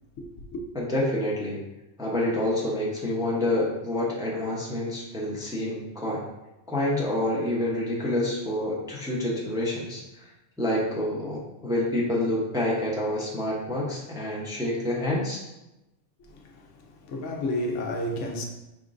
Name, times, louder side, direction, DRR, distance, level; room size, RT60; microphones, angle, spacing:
voice 1, 0.2-0.6 16.2-18.4, left 1 dB, 80° left, 1.0 m, -32 dB
voice 2, 0.7-1.6 2.0-6.2 6.7-10.3 10.6-15.4, left 1 dB, 5° right, 0.6 m, -28 dB
5.0 x 3.6 x 2.5 m
omnidirectional pair, 1.3 m